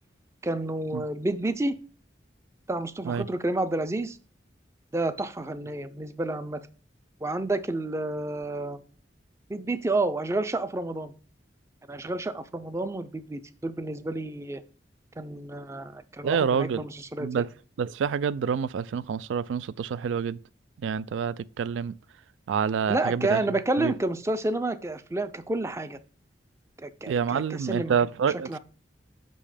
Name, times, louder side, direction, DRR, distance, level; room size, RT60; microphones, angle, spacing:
voice 1, 0.4-1.7 2.7-4.2 4.9-6.6 7.2-8.8 9.5-11.1 11.9-14.6 15.2-17.3 22.9-26.0 26.8-28.0 28.5-28.6, right 2 dB, 15° right, 0.4 m, -30 dB
voice 2, 16.2-16.8 17.2-17.5 17.8-20.4 20.8-21.9 22.5-23.4 23.8-23.9 27.1-28.6, right 7 dB, 90° right, 0.3 m, -27 dB
5.6 x 5.4 x 5.0 m
head